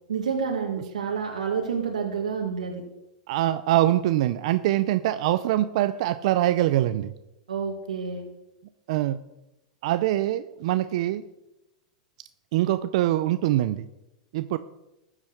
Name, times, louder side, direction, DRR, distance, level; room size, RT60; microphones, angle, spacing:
voice 1, 0.1-2.8 7.5-8.3, right 6 dB, 90° right, 0 dB, 1.8 m, -29 dB
voice 2, 3.3-7.1 8.9-9.2 9.8-11.2 12.5-13.9 14.3-14.6, right 14 dB, 65° right, 13 dB, 0.6 m, -23 dB
13.5 x 7.5 x 6.5 m, 0.93 s
hypercardioid pair, 115°, 4 cm